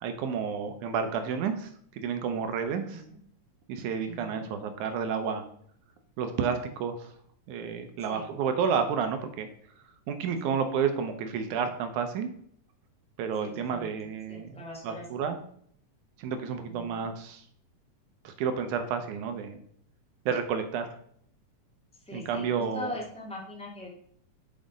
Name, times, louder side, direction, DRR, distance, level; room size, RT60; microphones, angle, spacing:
voice 1, 0.0-3.0 3.7-5.5 6.2-7.1 7.5-9.5 10.1-12.3 13.2-15.4 16.2-17.4 18.2-19.6 20.3-21.0 22.1-22.9, right 6 dB, 75° right, 7 dB, 2.0 m, -31 dB
voice 2, 2.8-3.2 4.1-4.5 8.1-8.3 10.4-10.6 13.4-14.0 14.3-15.1 16.7-17.1 22.0-23.9, left 1 dB, 5° left, -2 dB, 0.8 m, -41 dB
7.4 x 5.0 x 5.1 m, 0.65 s
omnidirectional pair, 3.8 m